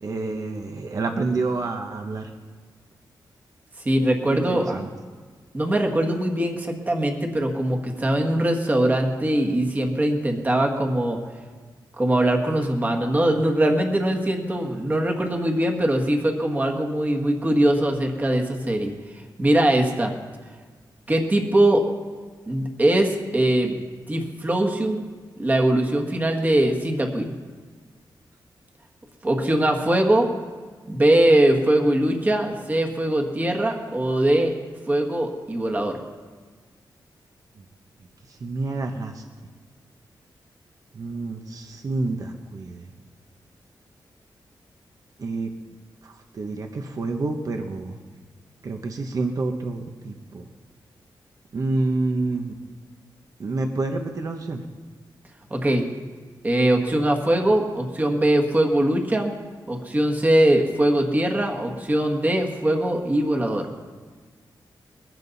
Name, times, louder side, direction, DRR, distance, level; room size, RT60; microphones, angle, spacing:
voice 1, 0.0-2.3 4.3-4.9 37.6-37.7 38.3-39.2 40.9-42.9 45.2-45.5 46.0-48.0 48.6-50.5 51.5-52.5 53.4-54.6, right 3 dB, 45° right, 4 dB, 1.0 m, -28 dB
voice 2, 3.8-4.8 5.5-11.2 12.0-18.9 19.4-20.1 21.1-21.8 22.5-23.8 24.1-25.0 25.4-27.3 29.2-30.3 30.9-34.5 34.9-36.0 55.5-55.8 56.4-59.3 59.7-63.7, right 1 dB, 20° right, 2 dB, 1.5 m, -21 dB
21.0 x 15.0 x 4.1 m, 1.5 s
wide cardioid pair, 150°, 8 cm